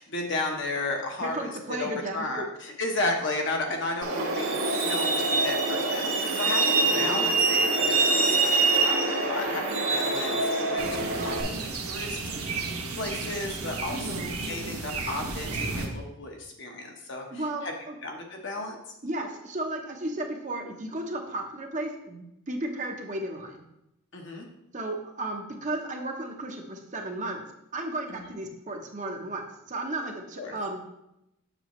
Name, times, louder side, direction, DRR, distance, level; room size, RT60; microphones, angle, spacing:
voice 1, 0.0-12.2 12.9-17.7 18.0-18.8 24.1-24.5 30.4-30.6, left 2 dB, 55° left, 1 dB, 1.1 m, -34 dB
voice 2, 1.2-2.4 13.9-14.2 17.3-18.0 19.0-23.6 24.7-27.4 27.7-30.8, right 2 dB, 35° right, 2 dB, 0.8 m, -34 dB
Truck, 4.0-11.4, right 3 dB, 70° right, 1.5 m, -25 dB
sound 1, 10.8-15.9, right 3 dB, 90° right, 1.2 m, -33 dB
6.8 x 6.8 x 3.1 m, 0.85 s
head